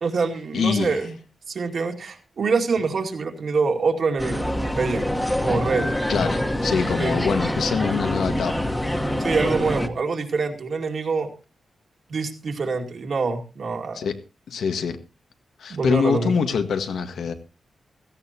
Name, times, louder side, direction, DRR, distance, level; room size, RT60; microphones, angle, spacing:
voice 1, 0.0-1.1 1.5-4.5 4.7-5.1 5.4-5.9 7.0-7.2 9.2-11.3 12.1-14.0 15.7-16.3, right 4 dB, 55° right, 2.4 m, -25 dB
voice 2, 0.5-1.0 6.1-8.7 13.9-14.2 14.5-15.0 15.6-17.3, left 6 dB, 85° left, 1.7 m, -24 dB
sound 1, 4.2-9.9, left 1 dB, 5° left, 1.4 m, -25 dB
17.0 x 15.0 x 2.9 m
wide cardioid pair, 130°, 0 cm